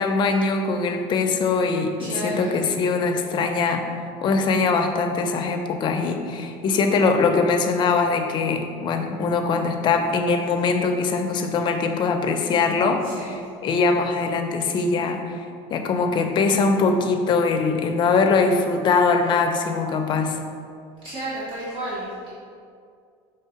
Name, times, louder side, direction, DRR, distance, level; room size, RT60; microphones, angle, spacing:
voice 1, 0.0-3.9 4.2-20.4, left 4 dB, 35° left, 5 dB, 0.6 m, -22 dB
voice 2, 2.0-2.6 13.0-13.4 21.0-22.3, right 1 dB, 40° right, -7 dB, 1.1 m, -32 dB
5.6 x 3.3 x 5.7 m, 2.3 s
cardioid pair, 145°, 13 cm